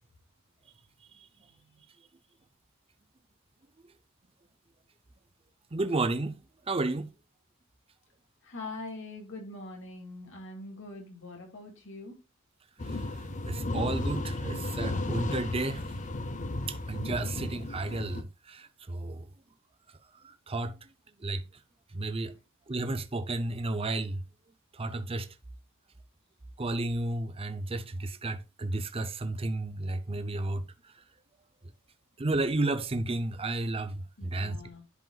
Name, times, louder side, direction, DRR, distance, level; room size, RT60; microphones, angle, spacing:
voice 1, 1.4-1.8 8.4-12.2 34.2-34.8, left 2 dB, 60° left, 2.4 m, -43 dB
voice 2, 5.7-6.4 6.7-7.1 13.5-15.8 16.7-19.2 20.2-20.8 21.2-21.4 21.9-22.3 22.7-24.2 24.7-25.3 26.6-30.6 32.2-34.6, right 2 dB, 25° right, 0.6 m, -32 dB
sound 1, 12.8-18.2, left 2 dB, 35° left, 0.7 m, -34 dB
10.5 x 5.1 x 2.4 m
head